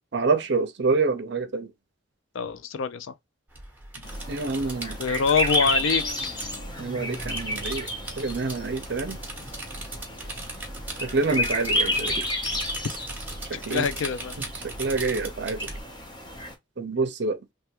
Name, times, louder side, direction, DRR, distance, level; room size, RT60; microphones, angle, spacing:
voice 1, 0.1-1.7 4.3-5.0 6.8-7.9 8.2-9.2 11.0-12.2 13.5-13.9 14.6-15.6 16.8-17.4, right 4 dB, 55° right, 0.6 m, -27 dB
voice 2, 2.3-3.1 5.0-6.0 13.5-14.4, left 6 dB, 75° left, 0.4 m, -25 dB
sound 1, 3.5-15.8, right 2 dB, 10° right, 0.8 m, -38 dB
sound 2, 4.0-16.5, left 1 dB, 20° left, 0.6 m, -31 dB
sound 3, 5.6-8.7, equal, 45° left, 1.2 m, -44 dB
3.3 x 2.2 x 2.8 m
head